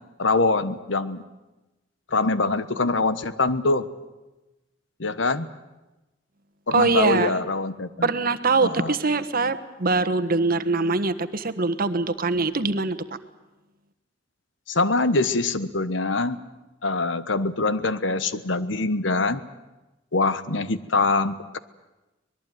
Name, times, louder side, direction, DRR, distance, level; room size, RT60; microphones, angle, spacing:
voice 1, 0.2-1.2 2.1-3.9 5.0-5.5 6.7-8.1 8.6-8.9 14.7-16.4 16.8-19.4 20.1-21.6, left 3 dB, 75° left, 13 dB, 1.3 m, -24 dB
voice 2, 6.7-7.3 8.0-13.2, right 3 dB, 50° right, 11 dB, 1.3 m, -23 dB
24.5 x 20.5 x 9.4 m, 1.0 s
head